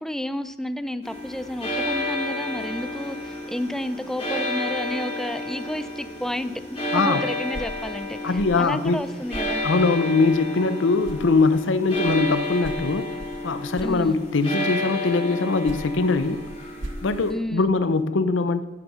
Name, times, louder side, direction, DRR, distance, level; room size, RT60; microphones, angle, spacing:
voice 1, 0.0-6.5 6.9-9.7 13.8-14.2 17.3-17.7, left 1 dB, ahead, 12 dB, 0.4 m, -31 dB
sound 1, 1.0-17.3, left 2 dB, 30° left, 2.8 m, -31 dB
sound 2, 7.4-10.7 11.0-14.6 15.4-18.0, right 1 dB, 80° right, 1.2 m, -42 dB
voice 2, 8.2-9.0 9.6-13.1 13.4-16.4 17.0-18.6, left 3 dB, 80° left, 12 dB, 0.6 m, -22 dB
10.0 x 9.1 x 5.5 m, 1.1 s
head